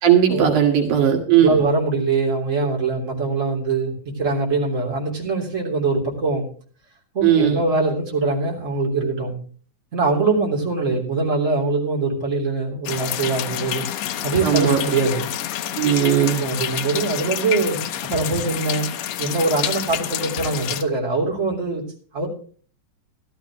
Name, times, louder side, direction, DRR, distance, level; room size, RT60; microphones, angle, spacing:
voice 1, 0.0-1.6 7.2-7.6 14.4-14.8 15.8-16.4, right 9 dB, 75° right, 3 dB, 3.1 m, -17 dB
voice 2, 1.4-6.5 7.1-9.4 9.9-13.8 14.2-15.3 16.4-17.8 18.1-18.9 19.2-21.8 22.1-22.3, right 3 dB, 25° right, -2 dB, 3.6 m, -23 dB
sound 1, 12.9-20.8, left 11 dB, 70° left, 1.8 m, -28 dB
14.5 x 13.0 x 3.1 m, 0.43 s
omnidirectional pair, 3.6 m